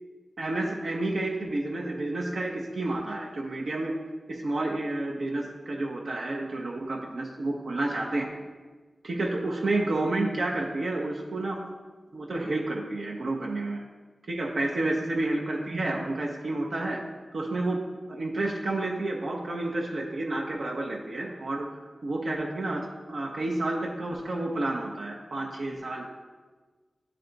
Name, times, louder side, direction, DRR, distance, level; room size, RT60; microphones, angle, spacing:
voice 1, 0.4-3.9 4.3-8.4 9.0-11.6 12.1-13.8 14.3-17.0 17.3-17.8 18.1-21.7 22.0-26.0, right 2 dB, 75° right, -2 dB, 0.7 m, -30 dB
9.6 x 3.4 x 3.9 m, 1.3 s
wide cardioid pair, 80°, 0 cm